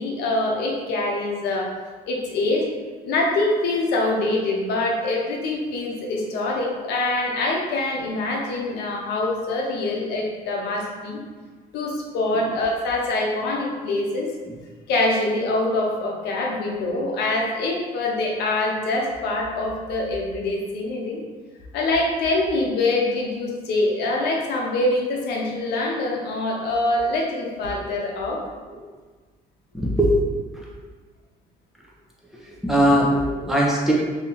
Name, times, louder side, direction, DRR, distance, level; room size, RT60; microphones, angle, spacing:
voice 1, 0.0-1.7 2.1-2.7 3.0-11.2 11.7-14.3 14.9-21.2 21.7-28.4, left 2 dB, 80° left, -1 dB, 0.7 m, -24 dB
voice 2, 29.7-30.2 30.5-30.8 32.4-33.9, equal, ahead, -5 dB, 0.8 m, -20 dB
2.9 x 2.7 x 3.8 m, 1.4 s
cardioid pair, 110°, 17 cm